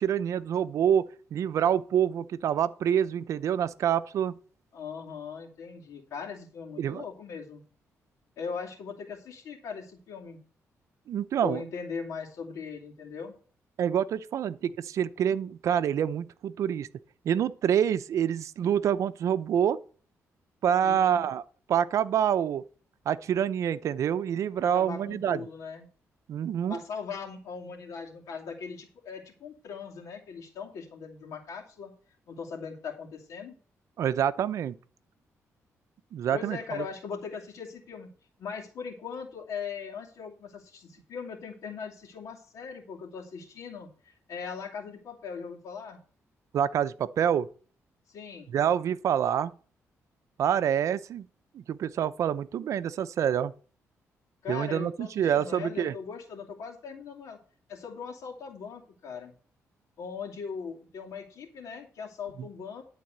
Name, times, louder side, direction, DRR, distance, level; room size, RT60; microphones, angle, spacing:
voice 1, 0.0-4.4 6.8-7.0 11.1-11.6 13.8-16.9 17.2-19.8 20.6-21.4 21.7-22.6 23.1-25.4 26.3-26.8 34.0-34.7 36.1-36.8 46.5-47.5 48.5-49.5 50.4-51.3 51.5-53.5 54.5-55.9 62.4-62.5, right 9 dB, 70° right, 0.6 m, -27 dB
voice 2, 4.7-7.6 8.4-10.4 11.4-13.3 20.8-21.2 24.7-25.9 26.7-31.9 32.3-33.5 36.3-38.1 38.4-46.0 48.1-48.5 54.4-57.4 57.7-59.3 60.0-62.8, left 6 dB, 80° left, 2.5 m, -39 dB
11.5 x 4.1 x 7.9 m
cardioid pair, 125°, 5 cm